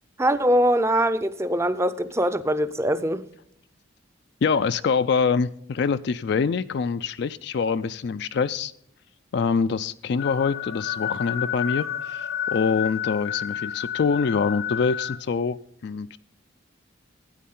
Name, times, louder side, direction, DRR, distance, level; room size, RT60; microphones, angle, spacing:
voice 1, 0.2-3.3, equal, 15° right, 0.5 m, -22 dB
voice 2, 4.4-8.7 9.3-16.2, left 5 dB, 60° left, 0.4 m, -25 dB
sound 1, 10.2-15.2, left 10 dB, 80° left, 1.1 m, -30 dB
12.5 x 9.2 x 3.8 m
head